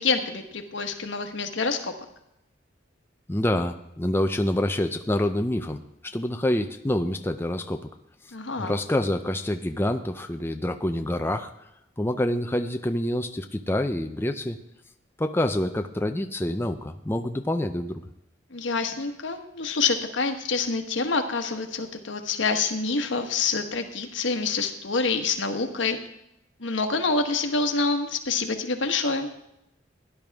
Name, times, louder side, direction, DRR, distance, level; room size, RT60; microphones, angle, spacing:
voice 1, 0.0-1.9 8.3-8.7 18.5-26.0 26.6-29.3, left 4 dB, 75° left, 5 dB, 1.3 m, -27 dB
voice 2, 3.3-7.9 8.6-11.7 12.0-14.6 15.2-18.1, left 1 dB, 10° left, 6 dB, 0.5 m, -27 dB
17.5 x 10.5 x 3.5 m, 0.83 s
head